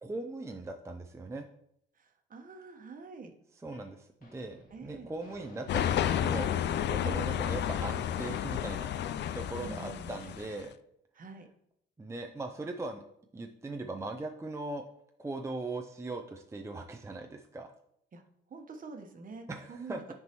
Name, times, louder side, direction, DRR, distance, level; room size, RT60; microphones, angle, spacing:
voice 1, 0.0-1.5 3.6-10.7 12.0-13.0 13.3-14.8 15.2-17.7 19.5-20.1, right 2 dB, 15° right, 3 dB, 0.5 m, -40 dB
voice 2, 1.9-3.3 4.7-5.1 7.0-7.5 9.6-10.2 11.1-11.5 18.1-18.2 18.5-20.1, right 4 dB, 45° right, 5 dB, 1.1 m, -46 dB
sound 1, 3.7-3.9 4.2-10.4, left 2 dB, 45° left, 1.6 m, -55 dB
sound 2, 5.7-10.6, left 10 dB, 60° left, 0.4 m, -31 dB
9.3 x 4.5 x 3.0 m, 0.74 s
cardioid pair, 90°, 20 cm